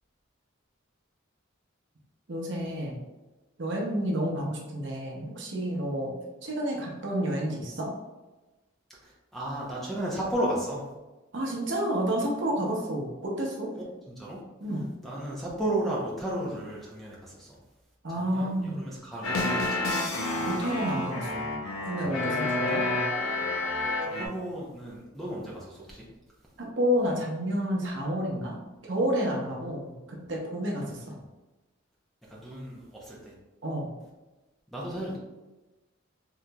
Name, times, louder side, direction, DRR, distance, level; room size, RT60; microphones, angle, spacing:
voice 1, 2.3-3.0 3.6-6.1 6.4-7.9 11.3-13.7 14.6-14.9 18.0-18.8 20.4-21.4 21.8-22.8 26.6-28.5 28.8-31.2 33.6-33.9, equal, 60° right, -1 dB, 0.7 m, -30 dB
voice 2, 9.0-10.9 14.1-14.4 15.0-17.6 18.1-20.0 24.0-26.1 30.0-30.3 31.0-31.2 32.2-33.3 34.7-35.2, right 1 dB, ahead, -5 dB, 0.6 m, -34 dB
sound 1, 19.2-24.3, left 2 dB, 90° left, 0.6 m, -29 dB
3.8 x 2.9 x 2.2 m, 1.1 s
head